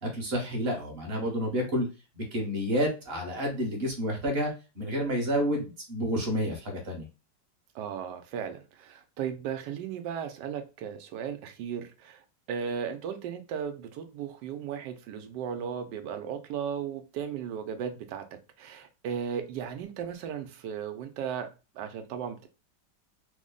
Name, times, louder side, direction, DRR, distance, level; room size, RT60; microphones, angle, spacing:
voice 1, 0.0-1.9 2.1-7.1, equal, 40° right, 1.1 m, -30 dB
voice 2, 7.7-12.2 12.5-18.3 18.6-22.5, right 8 dB, 80° right, 1.2 m, -36 dB
3.3 x 2.1 x 3.8 m
omnidirectional pair, 1.9 m